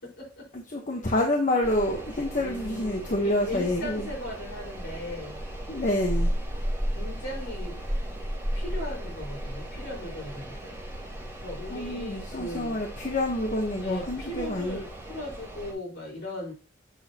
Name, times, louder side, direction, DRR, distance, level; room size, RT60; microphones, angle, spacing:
voice 1, 0.0-0.5 2.3-5.4 7.0-7.8 8.5-10.8 11.4-12.8 13.8-16.5, left 1 dB, 65° left, -4 dB, 4.6 m, -38 dB
voice 2, 0.5-4.1 5.7-6.3 11.7-14.8, left 1 dB, 40° left, 1 dB, 1.1 m, -28 dB
sound 1, 1.6-15.7, equal, 15° right, 3.5 m, -35 dB
8.4 x 6.3 x 2.9 m, 0.33 s
head